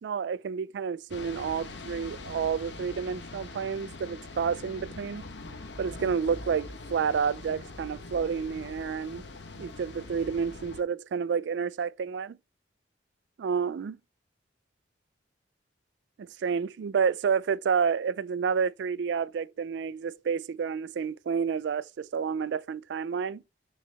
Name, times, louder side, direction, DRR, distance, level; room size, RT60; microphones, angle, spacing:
voice 1, 0.0-5.2 5.8-9.2 9.6-12.4 13.4-14.0 16.2-23.4, right 6 dB, 65° right, 0.3 m, -30 dB
sound 1, 1.1-10.8, left 3 dB, 70° left, 1.0 m, -43 dB
6.1 x 3.9 x 4.1 m
head